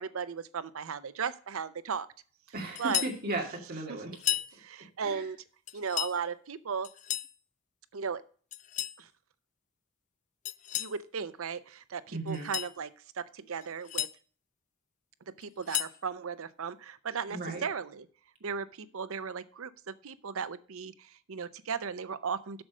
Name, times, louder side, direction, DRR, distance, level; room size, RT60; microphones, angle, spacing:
voice 1, 0.0-2.1 2.8-3.0 3.9-4.0 4.6-5.4 5.7-6.9 7.9-8.2 9.0-9.1 10.8-12.9 13.2-14.1 15.3-18.1 18.4-22.6, right 6 dB, 65° right, 14 dB, 0.6 m, -36 dB
voice 2, 2.5-4.3 5.0-5.3 12.1-12.5 17.3-17.6, right 2 dB, 45° right, 1 dB, 2.3 m, -36 dB
sound 1, 2.7-3.2 4.1-4.5 5.7-6.2 6.8-7.3 8.5-9.0 10.4-11.0 12.3-12.7 13.6-14.1 15.4-16.0, left 12 dB, 35° left, 0.3 m, -33 dB
7.8 x 6.3 x 6.4 m, 0.43 s
head